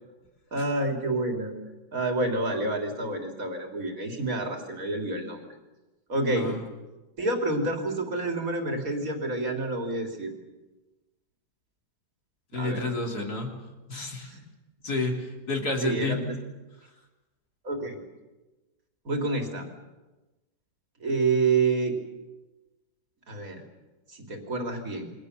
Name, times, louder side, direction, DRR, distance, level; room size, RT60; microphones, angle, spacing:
voice 1, 0.5-1.5 1.9-5.4 6.1-6.5 7.2-10.3 12.5-12.8 14.2-14.4 15.8-16.4 17.6-18.0 19.1-19.7 21.0-22.0 23.3-23.6 24.1-25.1, right 3 dB, 45° right, 3 dB, 3.6 m, -28 dB
voice 2, 12.5-13.5 13.9-14.3 14.8-16.3, left 2 dB, 55° left, 2 dB, 3.9 m, -30 dB
28.5 x 23.0 x 6.7 m, 1.1 s
omnidirectional pair, 2.0 m